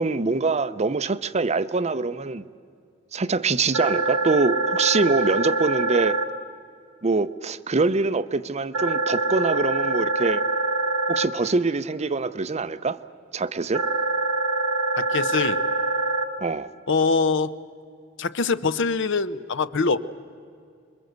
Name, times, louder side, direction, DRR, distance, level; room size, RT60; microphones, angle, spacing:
voice 1, 0.0-2.5 3.1-6.2 7.0-10.5 11.1-13.0 13.3-13.8 16.4-16.7, right 3 dB, 35° right, 0.6 m, -24 dB
sound 1, 3.7-6.2 8.7-11.2 13.7-16.2, right 3 dB, 80° right, 1.4 m, -24 dB
voice 2, 15.0-15.6 16.9-17.6 18.2-20.0, left 4 dB, 65° left, 0.8 m, -23 dB
26.5 x 22.5 x 8.0 m
head